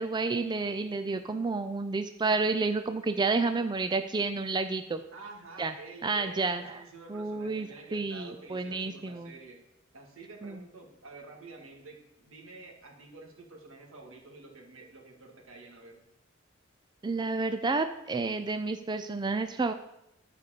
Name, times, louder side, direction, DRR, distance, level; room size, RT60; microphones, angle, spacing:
voice 1, 0.0-5.0 5.6-5.7 6.0-6.6 7.1-9.3 10.4-10.6 17.0-19.7, right 3 dB, 20° right, 9 dB, 0.4 m, -30 dB
voice 2, 5.1-9.6 9.9-16.0, right 3 dB, 80° right, -1 dB, 2.3 m, -49 dB
11.5 x 5.2 x 6.7 m, 0.85 s
head